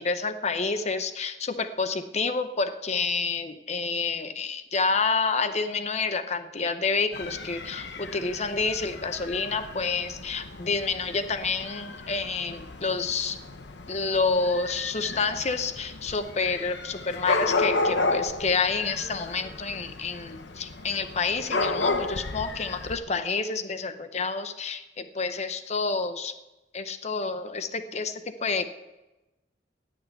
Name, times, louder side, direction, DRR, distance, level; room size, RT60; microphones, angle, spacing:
voice 1, 0.0-13.4 13.9-26.3 26.7-28.7, left 4 dB, 40° left, 9 dB, 0.8 m, -29 dB
Dog / Cat, 7.1-23.0, left 3 dB, 75° left, 1.0 m, -33 dB
18.0 x 6.4 x 8.0 m, 1.1 s
head